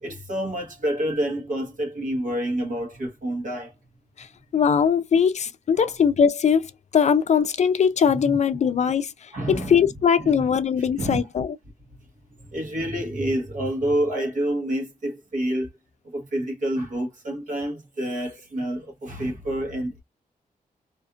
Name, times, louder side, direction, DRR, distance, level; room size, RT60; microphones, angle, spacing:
voice 1, 0.0-3.7 5.8-5.9 8.1-8.4 9.3-9.8 10.2-11.2 12.5-15.7 16.0-20.0, right 1 dB, 60° right, 1.1 m, -28 dB
voice 2, 4.5-6.7 6.9-9.1 9.5-11.6, left 7 dB, 50° left, 0.4 m, -20 dB
2.5 x 2.4 x 2.4 m
wide cardioid pair, 115°, 15 cm